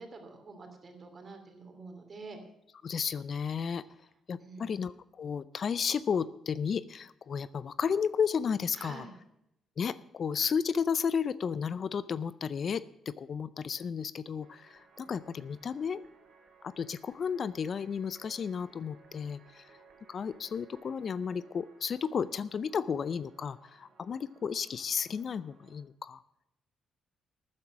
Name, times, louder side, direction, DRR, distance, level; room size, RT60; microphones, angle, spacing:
voice 1, 0.0-2.4 4.4-4.7 8.8-9.1, right 3 dB, 40° right, 5 dB, 3.0 m, -47 dB
voice 2, 2.8-3.8 4.3-9.1 9.8-16.0 16.6-19.7 20.1-26.2, left 6 dB, 50° left, 17 dB, 0.5 m, -33 dB
sound 1, 14.4-25.8, right 4 dB, 60° right, 3.1 m, -61 dB
13.0 x 9.6 x 6.1 m, 0.82 s
cardioid pair, 90°, 0 cm